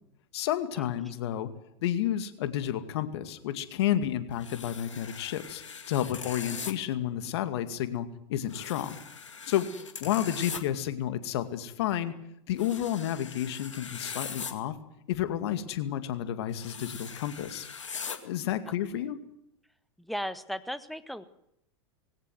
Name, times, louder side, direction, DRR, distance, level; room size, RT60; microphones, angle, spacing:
voice 1, 0.3-1.5 1.8-9.0 9.5-9.7 10.0-12.1 12.5-14.8 15.1-17.7 18.2-19.2, left 11 dB, 60° left, 11 dB, 2.2 m, -31 dB
sound 1, 4.4-6.7 8.5-10.6 12.6-14.5 16.5-18.2, left 6 dB, 90° left, 2.3 m, -41 dB
voice 2, 20.0-21.2, equal, ahead, 13 dB, 1.5 m, -36 dB
20.0 x 17.5 x 9.4 m, 0.77 s
hypercardioid pair, 100°, 15 cm